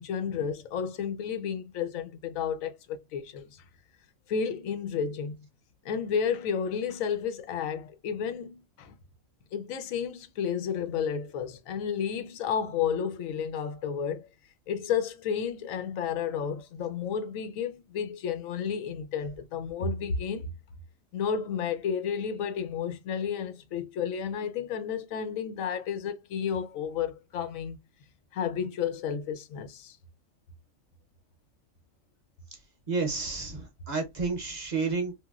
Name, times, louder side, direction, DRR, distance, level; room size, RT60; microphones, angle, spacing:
voice 1, 0.0-3.5 4.3-5.4 5.8-8.9 9.5-14.3 14.7-20.5 21.1-27.8 28.3-30.0, left 7 dB, 80° left, 1.0 m, -32 dB
voice 2, 32.9-35.1, right 4 dB, 45° right, 0.6 m, -30 dB
2.9 x 2.6 x 2.3 m
omnidirectional pair, 1.4 m